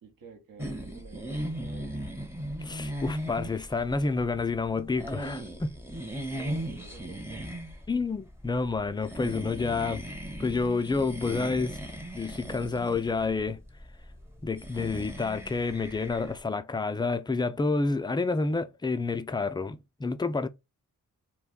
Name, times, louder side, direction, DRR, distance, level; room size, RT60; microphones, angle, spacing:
voice 1, 0.0-2.2 6.3-7.5, right 6 dB, 65° right, 0.8 m, -50 dB
sound 1, 0.6-16.4, equal, 5° right, 0.7 m, -38 dB
voice 2, 2.6-5.8 7.9-10.1 10.4-11.8 12.2-13.6 14.4-20.5, left 3 dB, 15° left, 0.3 m, -29 dB
2.2 x 2.2 x 3.5 m
cardioid pair, 55°, 37 cm